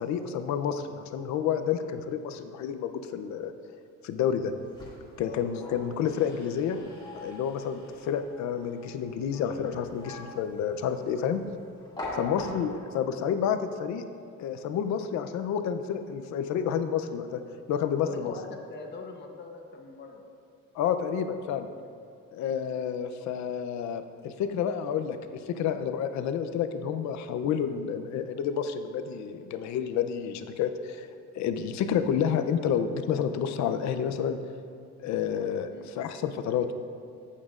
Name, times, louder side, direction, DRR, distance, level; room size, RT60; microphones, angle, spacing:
voice 1, 0.0-3.5 4.0-4.5 5.2-6.8 7.1-11.4 12.2-14.0 14.4-17.4 17.7-18.3 20.7-21.7 22.3-31.1 31.3-34.4 35.0-36.7, left 8 dB, 65° left, 9 dB, 0.6 m, -29 dB
sound 1, 4.4-13.0, left 2 dB, 15° left, 2.1 m, -45 dB
voice 2, 12.1-12.5 17.9-20.2 35.7-35.9, left 4 dB, 35° left, 3 dB, 0.9 m, -42 dB
14.0 x 8.4 x 2.5 m, 2.4 s
cardioid pair, 165°, 30 cm